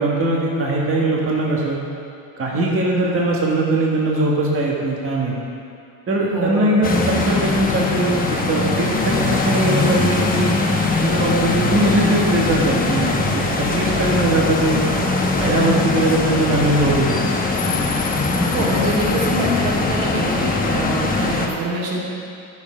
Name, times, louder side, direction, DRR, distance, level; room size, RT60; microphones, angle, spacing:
voice 1, 0.0-1.8 2.4-5.3 6.1-10.6 11.0-14.8 15.3-17.2, right 1 dB, 30° right, -3 dB, 1.6 m, -20 dB
voice 2, 6.3-6.7 15.2-15.3 18.5-22.0, right 2 dB, 85° right, -4 dB, 2.5 m, -25 dB
sound 1, 6.8-21.5, left 3 dB, 20° left, 1.0 m, -21 dB
11.0 x 7.2 x 5.1 m, 2.5 s
cardioid pair, 130°, 41 cm